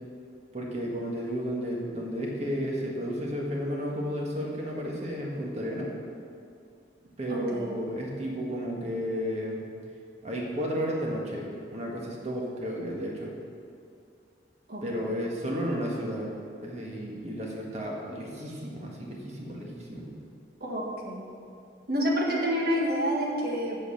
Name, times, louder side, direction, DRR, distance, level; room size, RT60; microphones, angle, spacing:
voice 1, 0.5-5.9 7.2-9.6 10.2-13.3 14.8-16.3 16.6-20.1, equal, 35° right, -2 dB, 1.5 m, -32 dB
voice 2, 7.3-7.7 14.7-15.1 20.6-21.2 21.9-23.8, equal, 55° right, -2 dB, 1.7 m, -28 dB
8.2 x 6.6 x 6.5 m, 2.4 s
head